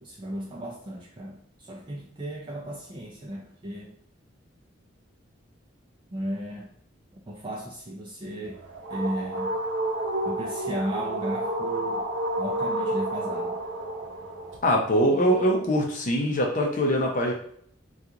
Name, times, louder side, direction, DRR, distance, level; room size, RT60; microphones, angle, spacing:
voice 1, 0.0-3.9 6.1-6.7 7.3-8.6 8.9-9.5 10.2-12.1 12.4-13.6 15.2-15.4, equal, 25° right, -2 dB, 0.4 m, -35 dB
sound 1, 8.5-14.6, right 1 dB, 70° right, 0.7 m, -30 dB
voice 2, 14.6-17.3, equal, 40° left, 0 dB, 0.6 m, -23 dB
2.9 x 2.4 x 3.6 m, 0.63 s
head